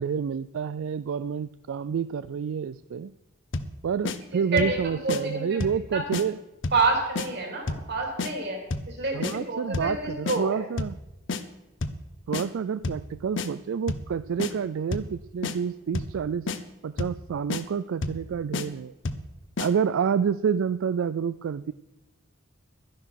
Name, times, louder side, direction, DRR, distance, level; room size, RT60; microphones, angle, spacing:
voice 1, 0.0-3.1 3.8-6.4 9.1-11.0 12.3-16.5 16.8-18.9 19.6-21.7, right 7 dB, 80° right, 15 dB, 0.4 m, -28 dB
sound 1, 3.5-3.8 4.0-4.2 4.6-4.8 5.1-5.2 5.6-5.8 6.1-6.2 6.6-6.9 7.1-7.3 7.7-7.9 8.2-8.3 8.7-8.9 9.2-9.3 9.7-10.0 10.3-10.4 10.8-11.0 11.3-11.4 11.8-12.0 12.3-12.4 12.8-13.1 13.4-13.5 13.9-14.1 14.4-14.5 14.9-15.1 15.4-15.6 15.9-16.2 16.5-16.6 17.0-17.2 17.5-17.6 18.0-18.2 18.5-18.7 19.0-19.3 19.6-19.7, left 3 dB, 65° left, 0.8 m, -30 dB
voice 2, 4.3-5.6 5.9-6.1 6.7-8.6 8.9-10.7, right 3 dB, 55° right, 2 dB, 3.4 m, -28 dB
12.0 x 10.5 x 5.9 m, 0.99 s
head